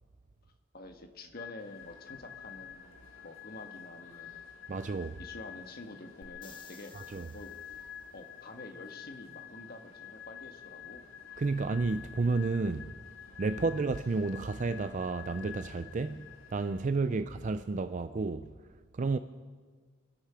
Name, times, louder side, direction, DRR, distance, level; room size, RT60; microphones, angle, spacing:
voice 1, 0.7-4.5 5.2-6.9 7.3-7.5 8.1-11.4 12.6-12.9 13.5-13.8 16.1-16.3 17.0-17.3, left 2 dB, 50° left, 1.5 m, -48 dB
sound 1, 1.4-17.0, left 9 dB, 65° left, 0.7 m, -49 dB
sound 2, 1.6-16.7, left 1 dB, 80° left, 2.4 m, -61 dB
voice 2, 4.7-5.2 6.9-7.3 11.4-12.9 13.4-16.2 16.5-18.5 18.9-19.2, right 3 dB, 40° right, 0.4 m, -31 dB
sound 3, 6.2-8.1 11.9-12.0, left 4 dB, 25° left, 1.3 m, -55 dB
25.5 x 11.5 x 4.9 m
head